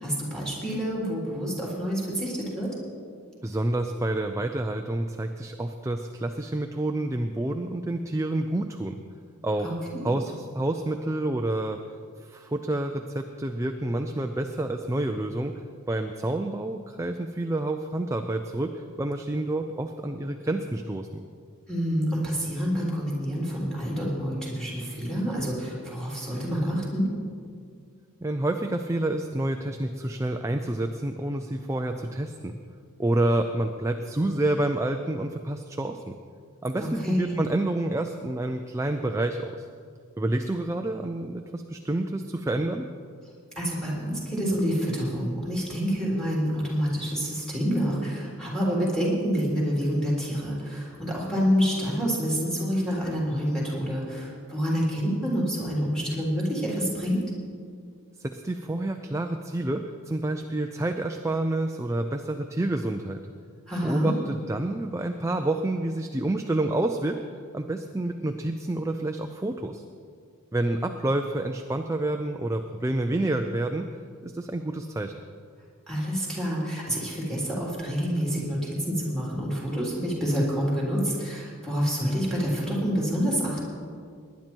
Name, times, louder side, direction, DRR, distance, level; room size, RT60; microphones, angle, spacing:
voice 1, 0.0-2.7 9.6-10.1 21.7-27.1 36.8-37.3 43.6-57.2 63.7-64.1 75.9-83.6, equal, 5° left, -5 dB, 3.5 m, -27 dB
voice 2, 3.4-9.0 9.4-9.7 10.0-11.8 12.2-15.5 15.9-21.2 28.2-32.6 33.0-36.2 36.6-39.6 40.2-42.9 58.2-63.2 63.8-67.2 67.5-69.8 70.5-73.9 74.2-75.1, right 1 dB, 15° right, 5 dB, 0.5 m, -28 dB
19.5 x 10.5 x 4.6 m, 2.2 s
head